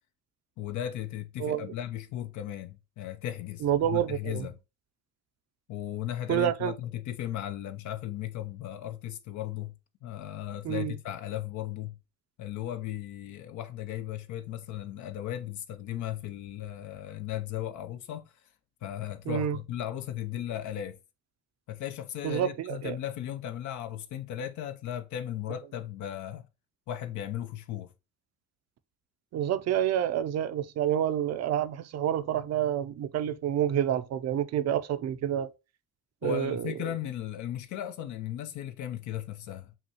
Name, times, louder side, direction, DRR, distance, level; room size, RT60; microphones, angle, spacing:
voice 1, 0.6-4.6 5.7-9.7 10.0-12.0 12.4-18.3 18.8-21.0 21.7-26.4 26.9-27.9 36.2-39.8, left 11 dB, 75° left, 0.5 m, -36 dB
voice 2, 1.4-1.7 3.6-4.5 6.3-6.7 10.6-10.9 19.3-19.6 22.2-23.0 29.3-35.5 36.2-36.7, right 10 dB, 60° right, 0.5 m, -28 dB
5.5 x 2.3 x 2.8 m
cardioid pair, 90°, 30 cm